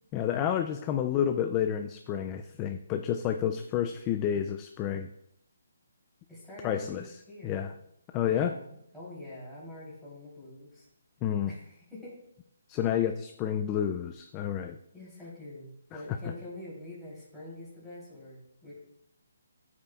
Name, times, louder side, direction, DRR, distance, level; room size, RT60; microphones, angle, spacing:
voice 1, 0.1-5.1 6.6-7.0 7.4-7.7 8.1-8.5 11.2-11.5 12.7-14.8, left 9 dB, 15° left, 7 dB, 0.4 m, -29 dB
voice 2, 6.3-7.6 8.2-10.9 11.5-12.2 14.9-18.8, left 1 dB, ahead, -11 dB, 3.3 m, -45 dB
13.0 x 8.6 x 2.4 m, 0.77 s
hypercardioid pair, 170°, 0 cm